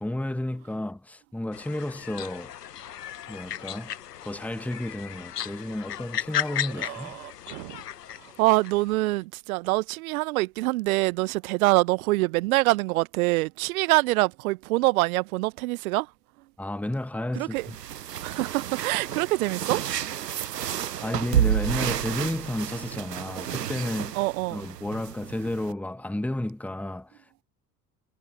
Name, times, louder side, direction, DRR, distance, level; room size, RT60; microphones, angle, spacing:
voice 1, 0.0-2.5 3.3-3.9 4.2-7.2 16.6-17.8 21.0-24.2 24.5-27.2, left 1 dB, 5° left, 1.7 m, -32 dB
sound 1, 1.5-9.0, left 10 dB, 75° left, 1.1 m, -36 dB
voice 2, 6.8-7.8 8.2-16.1 17.3-17.7 18.2-19.8 20.1-20.2 24.1-24.6, right 21 dB, 60° right, 1.3 m, -25 dB
sound 2, 17.5-25.7, right 10 dB, 80° right, 0.7 m, -30 dB
figure-of-eight pair, 60°, 47 cm